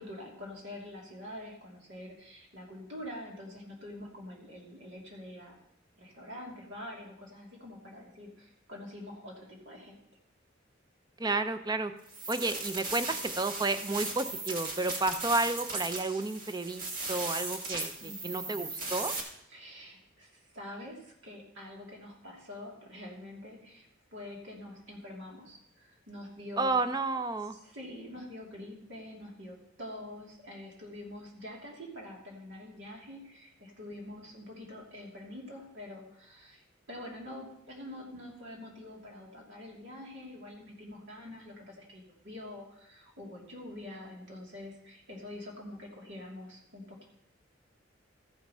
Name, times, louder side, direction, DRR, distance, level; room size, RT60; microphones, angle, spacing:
voice 1, 0.0-5.6 6.0-10.0 18.0-18.8 19.5-26.8 27.5-47.1, left 1 dB, 65° right, -2 dB, 2.8 m, -46 dB
voice 2, 11.2-11.9 12.3-16.8 17.1-19.1 26.6-27.6, right 3 dB, 20° right, 11 dB, 0.5 m, -31 dB
sound 1, 12.1-19.2, right 2 dB, 45° right, 1.8 m, -37 dB
14.0 x 5.7 x 5.6 m, 0.76 s
head